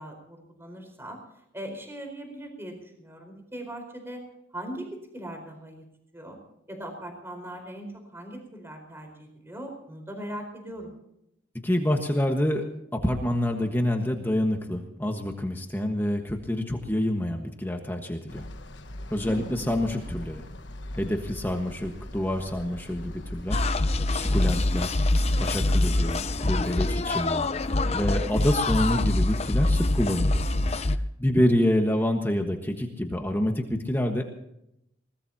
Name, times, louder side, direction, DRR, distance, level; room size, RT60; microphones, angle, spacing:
voice 1, 0.0-4.2 4.5-5.8 6.1-6.4 6.7-10.9 19.2-19.6, right 1 dB, 15° right, 3 dB, 4.5 m, -40 dB
voice 2, 11.6-12.7 12.9-18.4 19.1-20.4 20.9-23.7 24.1-25.0 25.4-27.5 27.9-34.2, left 1 dB, 10° left, 3 dB, 1.4 m, -27 dB
sound 1, 18.3-26.6, left 1 dB, 70° left, 1.3 m, -40 dB
sound 2, 23.5-31.0, left 2 dB, 35° left, 0.7 m, -25 dB
21.5 x 20.0 x 2.9 m, 0.80 s
head